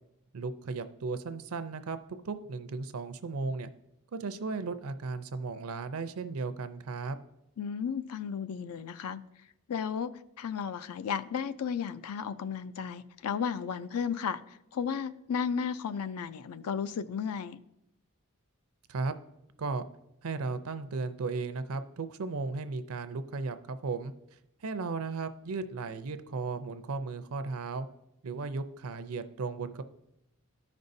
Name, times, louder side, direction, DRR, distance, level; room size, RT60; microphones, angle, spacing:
voice 1, 0.3-2.0 2.2-3.7 4.1-7.2 18.9-19.1 19.6-19.8 20.2-24.1 24.6-27.9 28.2-29.8, right 4 dB, 70° right, 0.5 m, -35 dB
voice 2, 7.6-9.2 9.7-10.1 10.4-17.6, left 7 dB, 80° left, 0.4 m, -34 dB
13.5 x 5.3 x 2.6 m
head